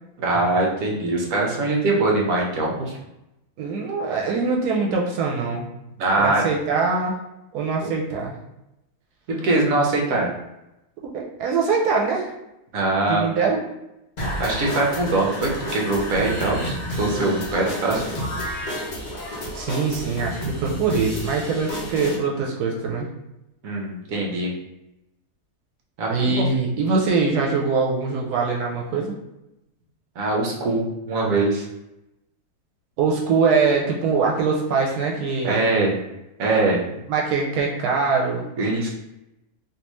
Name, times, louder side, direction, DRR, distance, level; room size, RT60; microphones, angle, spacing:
voice 1, 0.2-3.0 6.0-6.4 9.3-10.3 12.7-13.3 14.4-18.0 23.6-24.5 26.0-26.4 30.2-31.7 35.4-36.0 36.4-36.8 38.6-38.9, right 2 dB, 65° right, -1 dB, 1.1 m, -22 dB
voice 2, 3.6-5.7 6.1-7.2 7.5-8.3 11.1-12.3 13.1-13.6 19.5-23.1 26.1-29.2 33.0-35.6 37.1-38.5, right 4 dB, 90° right, -1 dB, 1.1 m, -23 dB
sound 1, 14.2-22.2, equal, 50° left, 0.5 m, -30 dB
3.4 x 2.7 x 3.0 m, 0.91 s
omnidirectional pair, 1.7 m